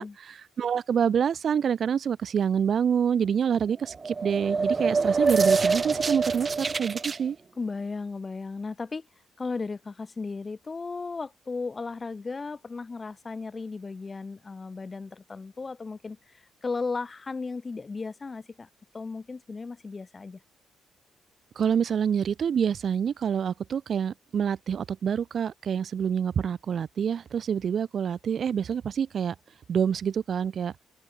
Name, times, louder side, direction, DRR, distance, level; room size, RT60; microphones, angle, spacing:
voice 1, 0.0-7.4 21.6-29.4 29.7-30.7, right 7 dB, 60° right, 0.4 m, -27 dB
sound 1, 3.8-7.2, right 4 dB, 35° right, 1.1 m, -25 dB
voice 2, 7.6-9.1 9.4-18.7 18.9-20.4, left 4 dB, 35° left, 4.4 m, -35 dB
open air
cardioid pair, 70°, 0 cm